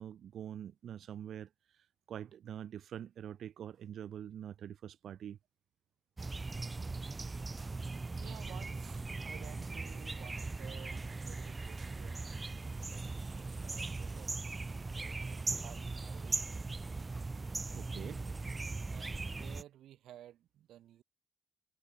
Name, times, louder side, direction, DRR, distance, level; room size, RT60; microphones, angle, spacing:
voice 1, 0.0-1.5 2.1-5.4 17.7-18.2, right 9 dB, 60° right, 1.5 m, -45 dB
sound 1, 6.2-19.6, right 3 dB, 20° right, 0.4 m, -39 dB
voice 2, 8.2-12.3 12.8-16.5 18.9-21.0, right 12 dB, 85° right, 4.5 m, -55 dB
cardioid pair, 155°, 0 cm